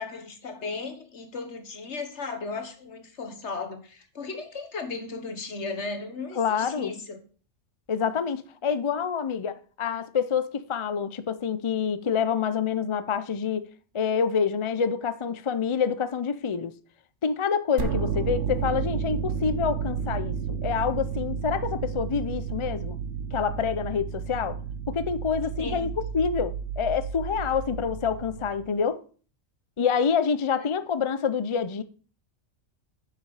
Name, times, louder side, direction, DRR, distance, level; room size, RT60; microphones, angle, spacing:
voice 1, 0.0-7.2 17.8-18.1 25.6-25.9 30.6-30.7, left 4 dB, 60° left, 1.7 m, -36 dB
voice 2, 6.4-6.9 7.9-13.7 13.9-16.7 17.2-23.0 23.3-24.6 24.9-29.0 29.8-31.8, left 6 dB, 45° left, 0.4 m, -27 dB
sound 1, 17.8-28.8, right 7 dB, 70° right, 1.3 m, -32 dB
9.8 x 6.8 x 4.8 m
omnidirectional pair, 1.3 m